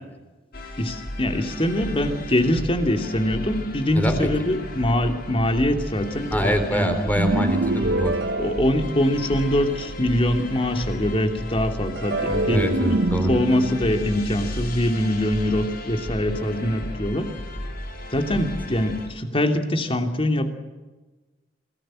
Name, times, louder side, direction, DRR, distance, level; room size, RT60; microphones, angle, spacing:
sound 1, 0.5-19.1, left 1 dB, 55° left, 4.6 m, -34 dB
voice 1, 0.8-6.9 8.4-13.0 13.3-17.3 18.1-20.5, left 1 dB, 30° left, 6 dB, 2.9 m, -23 dB
voice 2, 3.9-4.5 6.3-8.2 12.5-13.4, equal, 10° left, 7 dB, 3.9 m, -24 dB
sound 2, 7.2-9.5 12.0-15.3, right 2 dB, 65° right, 1.5 m, -26 dB
27.5 x 19.0 x 7.7 m, 1.2 s
head